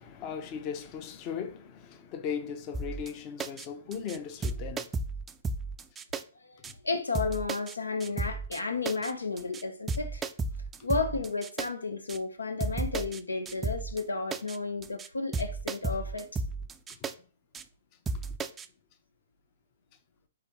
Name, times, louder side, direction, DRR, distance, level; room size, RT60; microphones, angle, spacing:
voice 1, 0.0-4.8, left 7 dB, 35° left, 0.7 m, -37 dB
sound 1, 2.7-3.1 3.4-3.7 3.9-4.2 4.4-6.2 6.6-6.7 7.1-7.7 8.0-8.6 8.9-9.1 9.4-9.6 9.9-11.7 12.1-12.2 12.6-13.2 13.5-14.0 14.3-14.6 14.8-15.1 15.3-17.1 17.5-17.6 18.1-18.7, right 3 dB, 15° right, 0.3 m, -33 dB
voice 2, 6.8-10.2 10.8-16.4, left 3 dB, 90° left, 0.5 m, -32 dB
4.9 x 3.5 x 3.0 m
hypercardioid pair, 120°, 0 cm